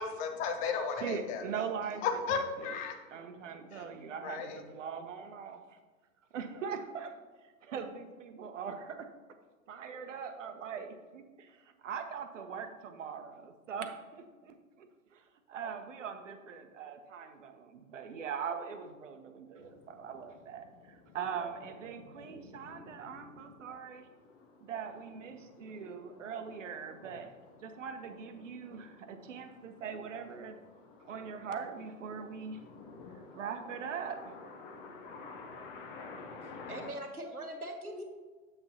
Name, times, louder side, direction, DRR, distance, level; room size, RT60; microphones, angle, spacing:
voice 1, 0.0-1.4 2.0-2.9 3.7-3.8 4.2-4.6, left 5 dB, 20° left, 5 dB, 0.6 m, -34 dB
voice 2, 1.0-2.8 3.1-5.8 6.3-7.2 7.6-9.1 9.7-24.1 24.6-27.3 27.6-30.6 31.0-32.6 33.3-34.3, right 6 dB, 60° right, 7 dB, 0.9 m, -41 dB
sound 1, 19.6-36.9, left 4 dB, 35° left, 0.9 m, -52 dB
voice 3, 36.4-38.0, right 1 dB, 90° right, 4 dB, 1.2 m, -42 dB
7.7 x 6.9 x 2.8 m, 1.3 s
figure-of-eight pair, 105°, 43 cm